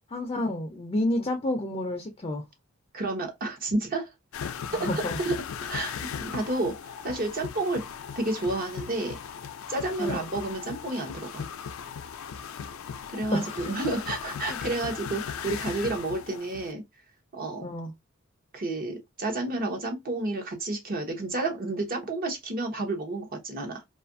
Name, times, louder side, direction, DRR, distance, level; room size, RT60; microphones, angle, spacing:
voice 1, 0.1-2.4 4.8-5.2 10.0-10.3 13.3-13.7 14.5-14.6 17.6-17.9, left 1 dB, 30° left, 0.4 m, -30 dB
voice 2, 2.9-4.1 4.7-4.9 5.2-5.3 5.6-5.9 6.2-7.8 8.2-9.2 9.7-11.5 13.1-16.8 17.3-17.6 18.5-23.8, right 2 dB, 45° right, 0.8 m, -30 dB
sound 1, 4.3-16.7, left 7 dB, 90° left, 0.4 m, -38 dB
2.6 x 2.4 x 2.5 m
head